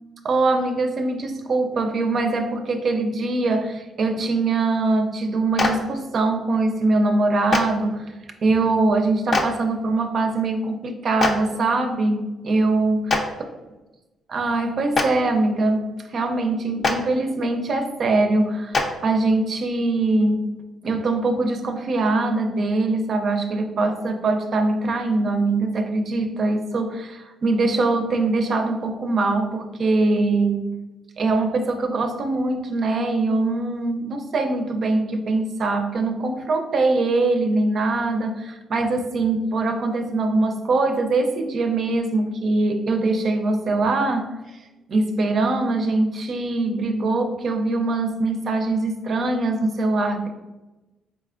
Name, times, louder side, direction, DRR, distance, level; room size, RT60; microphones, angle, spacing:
voice 1, 0.2-8.1 8.4-13.2 14.3-20.5 20.8-30.8 31.2-44.3 44.9-50.3, right 2 dB, 55° right, 5 dB, 0.5 m, -22 dB
Clapping, 5.6-5.7 7.5-7.6 9.3-9.4 11.2-11.3 13.1-13.2 14.9-15.0 16.8-16.9 18.7-18.8, left 3 dB, 45° left, 0.5 m, -20 dB
4.1 x 3.2 x 2.4 m, 1.1 s
cardioid pair, 90°, 0 cm